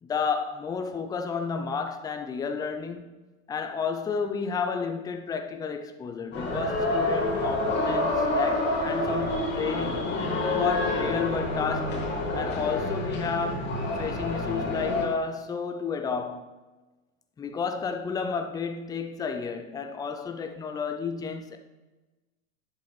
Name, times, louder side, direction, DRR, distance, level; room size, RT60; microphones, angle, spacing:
voice 1, 0.0-3.0 3.5-10.2 10.6-12.0 12.3-16.6 17.4-21.6, left 5 dB, 10° left, 0.5 m, -31 dB
sound 1, 6.3-15.1, left 2 dB, 25° left, 2.4 m, -28 dB
10.5 x 7.2 x 3.3 m
hypercardioid pair, 105°, 41 cm